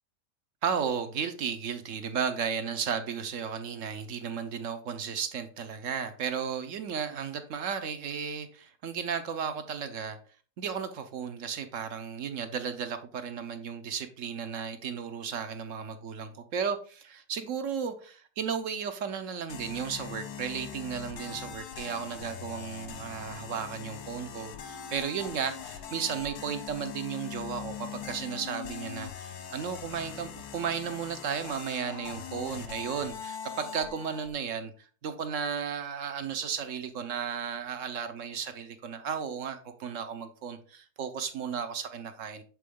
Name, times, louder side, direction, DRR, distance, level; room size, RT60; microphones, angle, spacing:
voice 1, 0.6-10.2 10.6-42.4, right 7 dB, 60° right, 0.9 m, -34 dB
sound 1, 19.5-34.3, left 7 dB, 85° left, 1.3 m, -42 dB
7.6 x 3.7 x 3.6 m
omnidirectional pair, 1.7 m